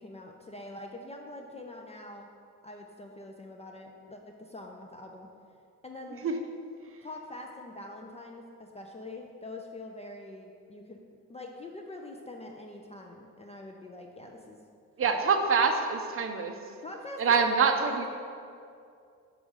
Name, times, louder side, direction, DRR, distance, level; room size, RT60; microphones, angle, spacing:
voice 1, 0.0-2.3 2.6-5.3 5.8-6.2 7.0-11.0 11.3-14.6 15.0-15.2 16.8-17.2 17.6-18.1, left 2 dB, 20° left, 1 dB, 0.3 m, -44 dB
voice 2, 15.0-16.5 17.2-18.1, right 5 dB, 35° right, 6 dB, 0.5 m, -25 dB
4.9 x 3.5 x 5.4 m, 2.4 s
cardioid pair, 95°, 37 cm